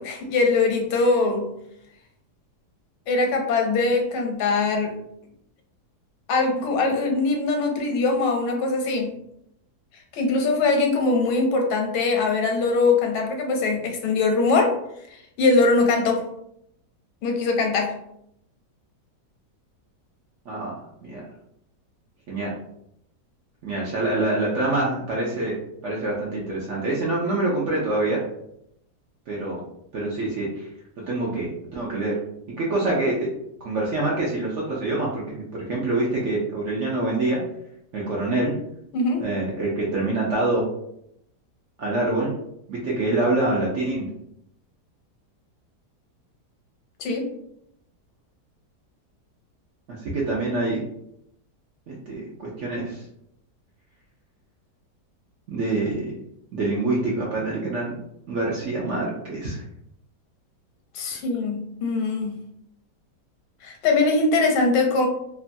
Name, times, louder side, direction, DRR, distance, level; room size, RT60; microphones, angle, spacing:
voice 1, 0.0-1.5 3.1-4.9 6.3-9.1 10.1-14.7 15.4-16.2 17.2-17.9 38.9-39.2 47.0-47.2 60.9-62.4 63.6-65.1, left 3 dB, 85° left, 3 dB, 1.2 m, -22 dB
voice 2, 20.5-21.2 22.3-22.5 23.6-25.6 25.8-28.2 29.3-29.6 29.9-30.7 31.1-32.1 32.6-33.3 33.6-37.4 37.9-38.5 39.2-40.7 41.8-42.3 42.7-44.1 49.9-50.8 51.9-53.0 55.5-56.2 56.5-58.0 58.3-59.6, right 2 dB, 65° right, -4 dB, 0.7 m, -25 dB
2.9 x 2.3 x 2.5 m, 0.76 s
omnidirectional pair, 1.8 m